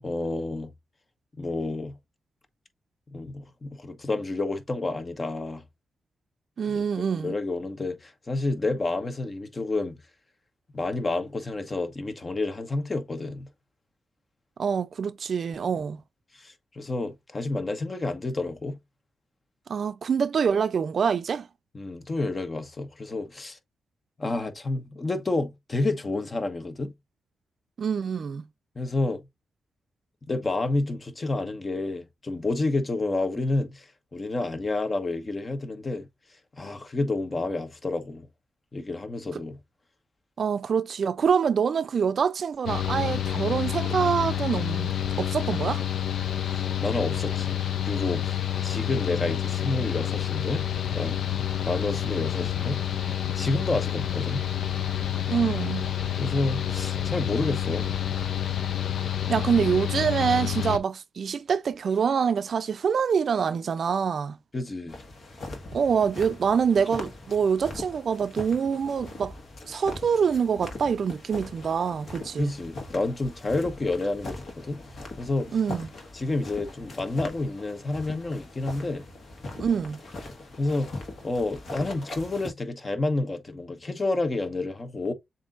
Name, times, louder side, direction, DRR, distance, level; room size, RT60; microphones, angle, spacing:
voice 1, 0.0-0.7 1.4-1.9 3.1-5.6 6.7-6.8 7.1-10.0 10.7-13.5 16.3-18.8 21.7-23.6 24.2-26.9 28.7-29.2 30.2-36.1 36.6-38.3 38.7-39.6 46.4-50.6 50.9-51.2 51.7-52.8 53.4-54.4 56.2-57.9 64.5-65.0 72.4-74.8 75.2-75.6 76.1-79.0 80.6-80.9 81.2-85.1, left 2 dB, 35° left, 1.0 m, -29 dB
voice 2, 6.6-7.3 14.6-16.0 19.7-21.5 27.8-28.4 39.3-39.4 40.4-45.8 55.3-55.9 59.3-64.4 65.7-69.3 69.7-72.5 75.5-75.9 79.6-80.0, right 6 dB, 65° right, 0.4 m, -25 dB
Mechanical fan, 42.7-60.8, left 10 dB, 75° left, 0.5 m, -28 dB
sound 1, 64.9-82.5, left 2 dB, 60° left, 1.5 m, -41 dB
7.1 x 2.7 x 2.5 m
cardioid pair, 60°, 0 cm